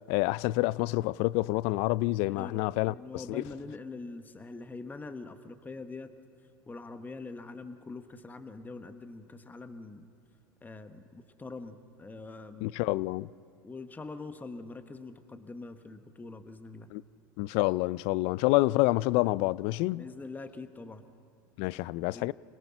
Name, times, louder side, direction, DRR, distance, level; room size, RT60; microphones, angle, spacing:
voice 1, 0.1-3.4 12.6-13.3 16.9-17.0 17.4-20.1 21.6-22.3, left 20 dB, 60° left, 0.4 m, -28 dB
voice 2, 2.3-6.1 6.7-10.1 10.6-13.0 13.6-16.9 19.9-21.0 22.1-22.3, left 3 dB, 15° left, 1.1 m, -44 dB
26.0 x 18.0 x 5.9 m
hypercardioid pair, 95°, 12 cm